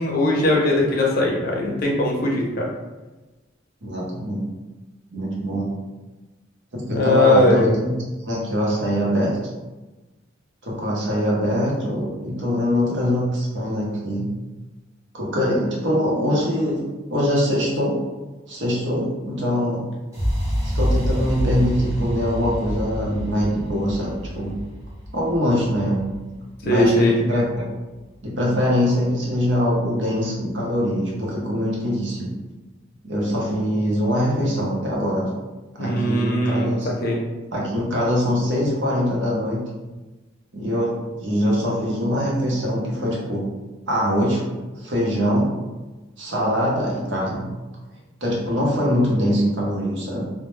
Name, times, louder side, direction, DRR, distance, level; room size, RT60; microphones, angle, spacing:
voice 1, 0.0-2.7 6.9-7.8 26.6-27.2 35.8-37.2, left 1 dB, 50° left, -2 dB, 0.5 m, -20 dB
voice 2, 3.8-4.4 5.1-5.7 6.7-8.0 8.3-9.4 10.6-14.3 15.1-16.8 17.1-18.0 18.5-19.9 20.7-24.6 25.1-26.1 26.6-27.6 28.2-32.3 33.0-35.3 35.8-36.9 37.5-39.6 40.5-43.5 43.9-44.4 44.7-45.5 46.2-47.5 48.2-50.2, equal, 65° right, -4 dB, 0.7 m, -23 dB
sound 1, 20.1-28.1, equal, 15° right, 0.7 m, -27 dB
2.1 x 2.0 x 3.1 m, 1.2 s
head